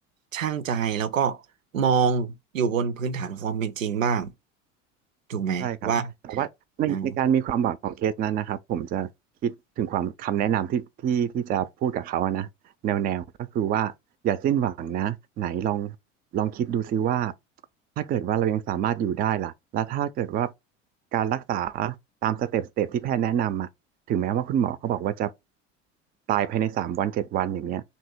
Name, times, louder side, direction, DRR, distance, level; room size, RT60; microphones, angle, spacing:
voice 1, 0.3-1.4 1.7-4.3 5.3-6.4 6.9-7.1, right 6 dB, 85° right, 0.5 m, -26 dB
voice 2, 5.6-5.9 6.2-6.5 6.8-9.1 9.4-12.5 12.8-13.9 14.2-16.0 16.3-17.3 18.0-20.5 21.1-22.0 22.2-23.7 24.1-25.3 26.3-27.8, right 10 dB, 25° right, 0.3 m, -26 dB
2.9 x 2.7 x 4.3 m
hypercardioid pair, 70°, 38 cm